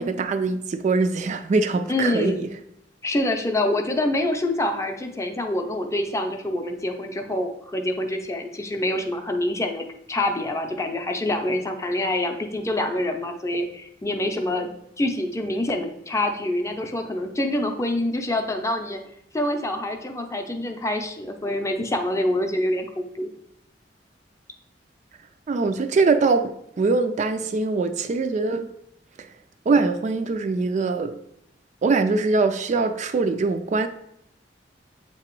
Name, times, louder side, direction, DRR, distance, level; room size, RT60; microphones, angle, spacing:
voice 1, 0.0-2.5 25.5-28.7 29.2-29.3 29.7-31.2 31.8-33.9, right 3 dB, 40° right, 0.3 m, -22 dB
voice 2, 1.9-2.4 3.0-14.7 15.0-19.0 19.3-23.3, left 1 dB, 15° left, 0.5 m, -26 dB
7.5 x 2.9 x 4.5 m
head